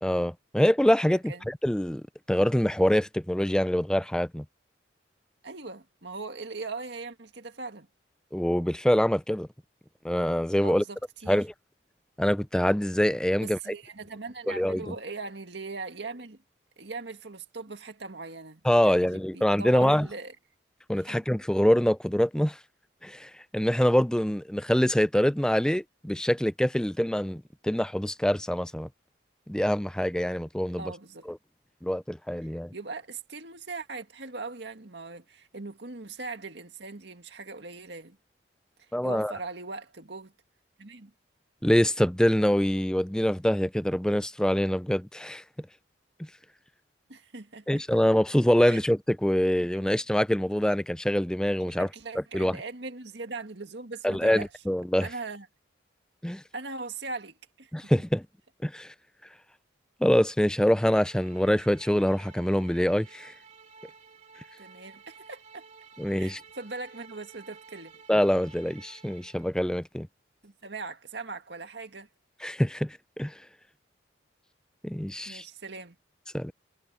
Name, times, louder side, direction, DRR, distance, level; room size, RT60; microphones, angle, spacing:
voice 1, 0.0-4.4 8.3-9.5 10.0-10.8 11.3-11.5 12.2-13.6 14.5-14.9 18.6-20.1 20.9-22.6 23.0-28.9 29.5-30.9 31.3-31.4 31.8-32.7 38.9-39.3 41.6-45.4 47.7-51.9 52.3-52.6 54.0-55.1 56.2-56.4 57.7-58.3 58.6-58.9 60.0-63.3 66.0-66.4 68.1-70.1 72.4-73.3 74.8-75.4 76.3-76.5, equal, 5° left, 0.4 m, -25 dB
voice 2, 1.1-1.5 5.4-7.9 10.6-11.4 13.4-16.4 16.8-20.4 21.0-21.2 30.8-31.3 32.7-38.2 38.8-40.3 40.8-41.1 47.1-47.8 48.7-48.8 49.7-49.8 51.8-54.5 55.0-55.5 56.5-57.9 64.6-65.6 66.2-67.9 70.4-72.1 75.3-76.0, right 3 dB, 65° right, 2.0 m, -40 dB
sound 1, 60.7-69.5, right 5 dB, 35° right, 3.4 m, -52 dB
head